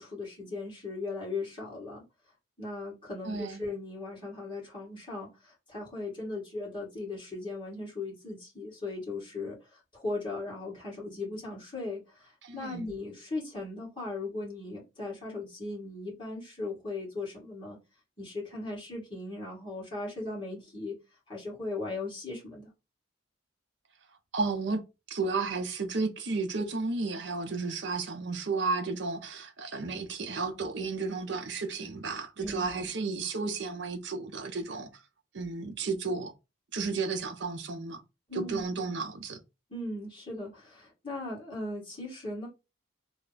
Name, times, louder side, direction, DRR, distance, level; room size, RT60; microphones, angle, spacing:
voice 1, 0.0-2.0 2.6-17.8 18.2-21.0 21.3-22.7 32.4-32.9 38.3-38.6 39.7-42.5, left 2 dB, 25° left, 1.8 m, -38 dB
voice 2, 3.2-3.6 12.4-12.9 24.3-24.8 25.1-34.9 35.3-36.3 36.7-38.0 38.3-39.4, right 4 dB, 60° right, 0.6 m, -33 dB
3.3 x 2.1 x 3.9 m
head